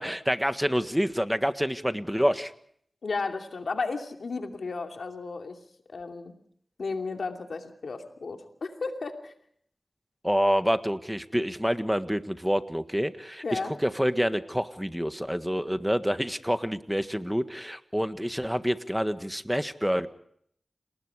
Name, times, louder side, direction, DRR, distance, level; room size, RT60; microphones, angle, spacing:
voice 1, 0.0-2.5 10.2-20.1, equal, 5° right, 10 dB, 1.6 m, -27 dB
voice 2, 3.0-5.5 5.9-6.3 6.8-9.3 13.4-13.7, left 4 dB, 85° left, 4 dB, 2.7 m, -33 dB
29.5 x 20.0 x 5.0 m, 0.66 s
cardioid pair, 40°, 0 cm